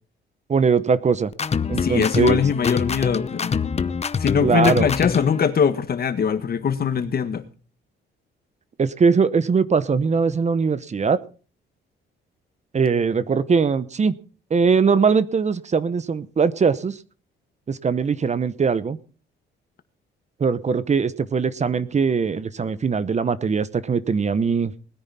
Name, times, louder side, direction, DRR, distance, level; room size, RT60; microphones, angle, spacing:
voice 1, 0.5-1.3 1.7-2.4 4.4-4.9 8.8-11.2 12.7-14.2 14.5-17.0 17.7-19.0 20.4-24.7, right 5 dB, 35° right, 0.9 m, -21 dB
sound 1, 1.3-5.4, left 6 dB, 35° left, 0.8 m, -25 dB
voice 2, 1.8-3.6 4.2-7.4, left 7 dB, 50° left, 1.7 m, -22 dB
20.0 x 9.9 x 4.2 m
cardioid pair, 90°, 20 cm